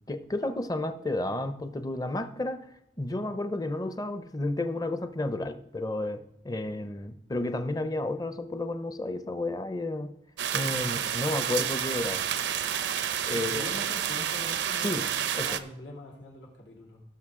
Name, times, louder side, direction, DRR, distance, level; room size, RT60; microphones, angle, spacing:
voice 1, 0.1-2.6 3.0-10.1 10.5-12.2 13.2-13.6 14.8-15.1 15.3-15.6, left 2 dB, 20° left, 9 dB, 0.6 m, -32 dB
sound 1, 10.4-15.6, right 9 dB, 75° right, 0.6 m, -30 dB
voice 2, 13.3-15.0 15.4-17.0, left 1 dB, 90° left, -2 dB, 3.1 m, -44 dB
17.0 x 6.4 x 3.6 m, 0.76 s
head